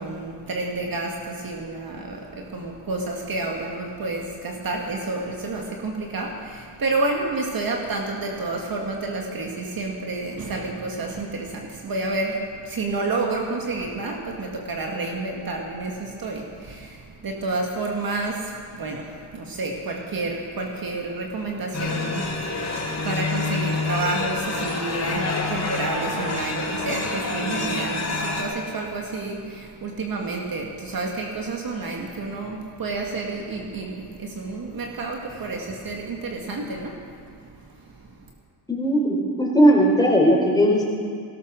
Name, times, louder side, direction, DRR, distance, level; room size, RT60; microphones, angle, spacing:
voice 1, 0.0-38.3, right 3 dB, 55° right, 0 dB, 1.9 m, -30 dB
sound 1, 21.7-28.4, left 3 dB, 40° left, 2.9 m, -27 dB
voice 2, 38.7-40.9, equal, 10° left, -1 dB, 4.1 m, -18 dB
16.5 x 13.0 x 6.3 m, 2.2 s
cardioid pair, 90°, 42 cm